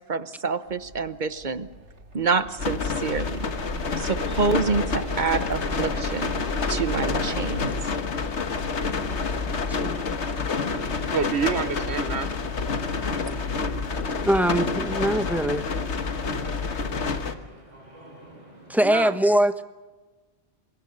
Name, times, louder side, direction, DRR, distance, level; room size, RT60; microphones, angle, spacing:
voice 1, 0.1-1.7 2.1-3.5 4.0-6.3 6.7-7.7, right 4 dB, 45° right, 12 dB, 1.1 m, -27 dB
sound 1, 0.7-7.7, right 2 dB, 90° right, 3.1 m, -38 dB
sound 2, 2.6-17.3, left 4 dB, 85° left, 1.7 m, -28 dB
sound 3, 3.6-19.1, right 1 dB, 30° right, 5.0 m, -46 dB
voice 2, 9.5-10.2 14.2-15.7 18.7-19.6, right 1 dB, ahead, 9 dB, 1.0 m, -23 dB
voice 3, 11.1-12.3 16.4-17.0 18.8-19.2, right 7 dB, 70° right, 13 dB, 1.4 m, -29 dB
24.5 x 21.5 x 6.6 m, 1.2 s
omnidirectional pair, 1.1 m